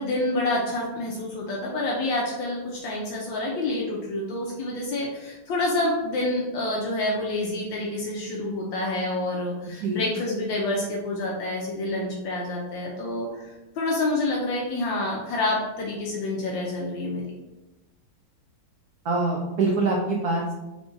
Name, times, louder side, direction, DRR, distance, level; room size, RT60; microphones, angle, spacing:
voice 1, 0.0-13.5 13.8-17.2, left 2 dB, 75° left, -3 dB, 1.3 m, -28 dB
voice 2, 9.6-10.0 19.0-20.5, right 3 dB, 70° right, -2 dB, 0.9 m, -25 dB
5.2 x 3.4 x 2.5 m, 1.0 s
omnidirectional pair, 2.3 m